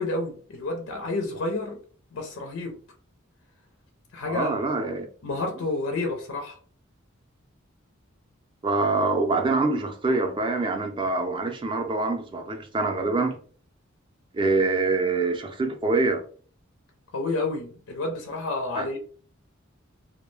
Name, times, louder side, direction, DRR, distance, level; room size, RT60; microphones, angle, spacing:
voice 1, 0.0-1.8 2.1-2.8 4.1-4.6 5.2-6.6 17.1-19.0, left 2 dB, 80° left, 0.5 m, -30 dB
voice 2, 4.3-5.4 8.6-13.4 14.3-16.2 18.7-18.9, right 3 dB, 25° right, 0.4 m, -25 dB
2.2 x 2.1 x 3.1 m
head